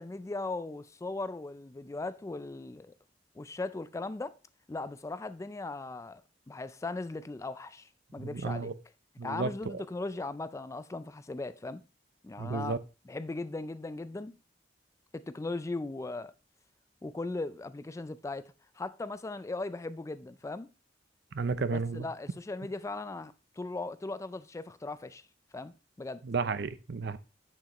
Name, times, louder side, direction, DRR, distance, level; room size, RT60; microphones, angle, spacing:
voice 1, 0.0-2.9 3.4-4.3 4.7-6.2 6.5-8.7 9.2-11.8 12.2-12.8 13.1-14.4 15.1-16.3 17.0-20.7 21.7-25.2 25.5-26.2, left 2 dB, 15° left, 0.3 m, -38 dB
voice 2, 8.2-8.7 9.2-9.8 12.4-12.8 21.3-22.0 26.2-27.2, right 4 dB, 65° right, 0.6 m, -32 dB
8.0 x 7.1 x 3.0 m
head